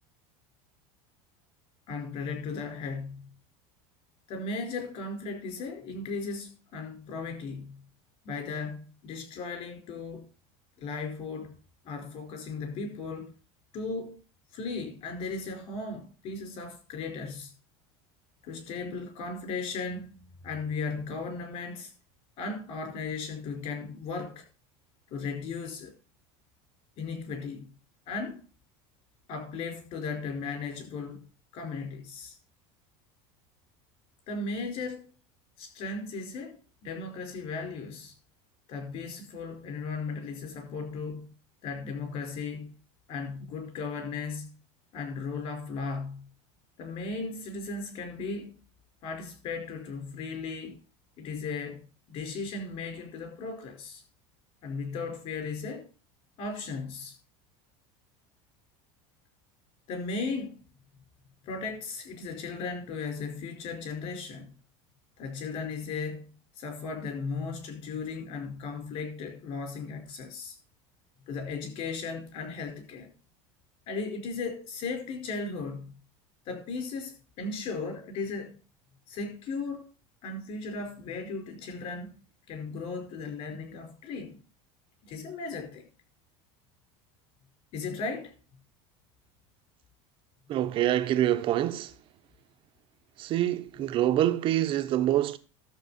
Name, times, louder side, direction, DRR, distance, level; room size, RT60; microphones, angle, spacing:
voice 1, 1.9-3.3 4.3-7.8 8.2-10.3 10.8-11.6 11.8-13.3 13.7-14.2 14.5-17.5 18.4-20.1 20.4-21.9 22.4-24.5 25.1-25.9 27.0-27.7 28.1-28.4 29.3-31.3 31.5-32.4 34.3-35.1 35.6-38.1 38.7-41.3 41.6-42.7 43.1-44.5 44.9-46.3 46.8-48.6 49.0-50.8 51.2-54.0 54.6-55.9 56.4-57.1 59.9-60.6 61.4-64.5 65.2-66.3 66.6-70.6 71.3-73.1 73.9-76.0 76.4-78.6 79.1-79.9 80.2-82.2 82.5-84.4 85.0-85.9 87.7-88.3, left 4 dB, 45° left, 4.9 m, -36 dB
voice 2, 90.5-91.9 93.2-95.4, right 12 dB, 40° right, 0.9 m, -26 dB
13.0 x 7.4 x 4.3 m
supercardioid pair, 150°, 14 cm